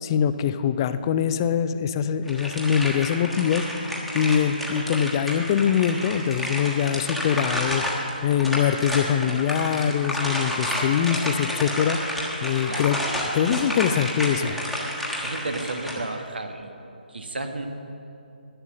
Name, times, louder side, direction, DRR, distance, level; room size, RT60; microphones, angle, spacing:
voice 1, 0.0-7.8 8.2-12.0 12.4-13.0 13.3-14.6, left 8 dB, 25° left, 12 dB, 0.5 m, -23 dB
sound 1, 2.3-16.0, equal, ahead, 1.3 m, -30 dB
voice 2, 15.2-16.7 17.1-17.7, right 2 dB, 75° right, 6 dB, 1.3 m, -32 dB
11.0 x 9.5 x 7.2 m, 2.9 s
figure-of-eight pair, 150°, 5 cm